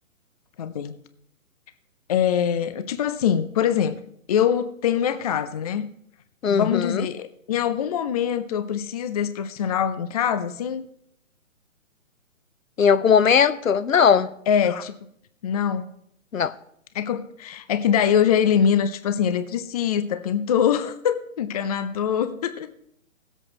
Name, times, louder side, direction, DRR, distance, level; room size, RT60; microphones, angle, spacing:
voice 1, 0.6-1.0 2.1-4.0 4.3-5.9 6.5-10.8 14.5-14.9 15.4-15.9 16.9-22.7, left 8 dB, 30° left, 0.6 m, -23 dB
voice 2, 6.4-7.0 12.8-14.3 16.3-16.5, left 7 dB, 75° left, 0.8 m, -18 dB
18.0 x 8.2 x 4.2 m
figure-of-eight pair, 135°, 41 cm